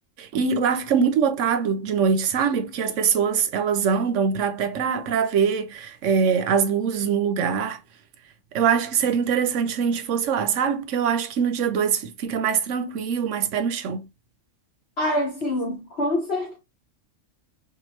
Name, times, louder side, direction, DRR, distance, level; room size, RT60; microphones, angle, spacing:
voice 1, 0.2-7.8 8.5-14.0, right 6 dB, 85° right, 1.0 m, -23 dB
voice 2, 15.0-16.6, left 1 dB, 55° left, 1.8 m, -25 dB
5.9 x 2.5 x 3.1 m
omnidirectional pair, 1.3 m